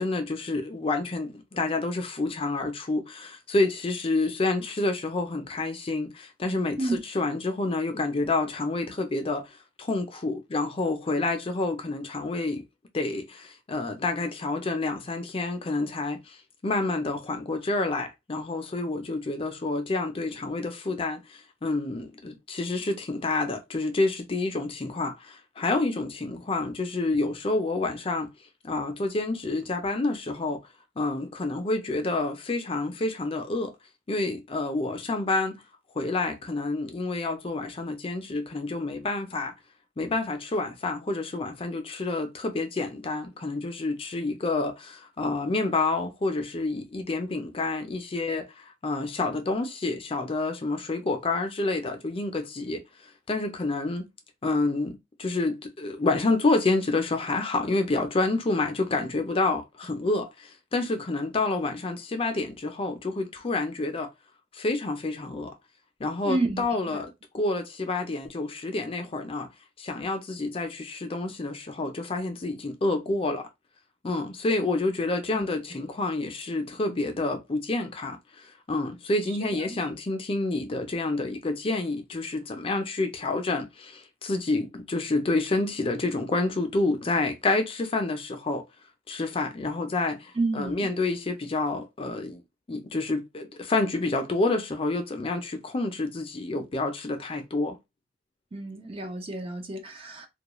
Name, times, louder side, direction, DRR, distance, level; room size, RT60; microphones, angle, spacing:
voice 1, 0.0-9.5 9.8-12.6 12.9-16.4 16.6-28.3 28.6-30.6 31.0-33.7 34.1-35.6 36.0-39.5 40.0-52.8 53.3-54.0 54.4-64.1 64.5-65.5 66.0-69.5 69.8-73.5 74.0-88.6 89.1-92.4 92.7-97.8, left 2 dB, 30° left, 0.4 m, -28 dB
voice 2, 66.2-67.0 75.3-75.5 79.4-79.5 90.4-90.9 98.5-100.3, right 2 dB, 30° right, 0.4 m, -30 dB
2.3 x 2.2 x 2.9 m
head